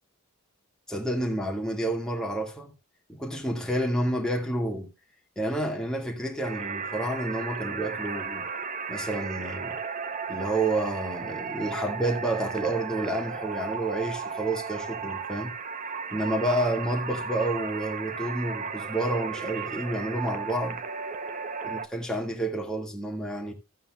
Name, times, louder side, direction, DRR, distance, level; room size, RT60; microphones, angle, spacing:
voice 1, 0.9-2.7 3.1-4.9 5.4-8.5 8.9-9.8 10.3-15.5 16.1-20.8 21.7-23.5, right 1 dB, 5° left, 1.9 m, -29 dB
sound 1, 6.4-21.9, right 5 dB, 35° right, 0.7 m, -35 dB
15.0 x 8.6 x 2.3 m
head